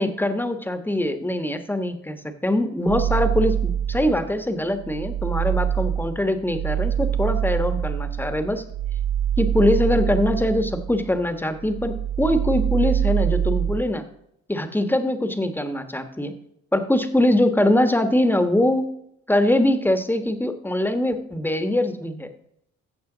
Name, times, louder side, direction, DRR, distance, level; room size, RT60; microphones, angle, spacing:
voice 1, 0.0-2.2 2.4-8.6 9.4-14.0 14.5-16.3 16.7-18.9 19.3-22.3, left 1 dB, 5° left, 8 dB, 1.2 m, -22 dB
sound 1, 2.9-4.3 4.7-11.2 11.5-13.8, right 9 dB, 80° right, 0.8 m, -25 dB
15.5 x 6.7 x 3.9 m, 0.77 s
cardioid pair, 90°, 30 cm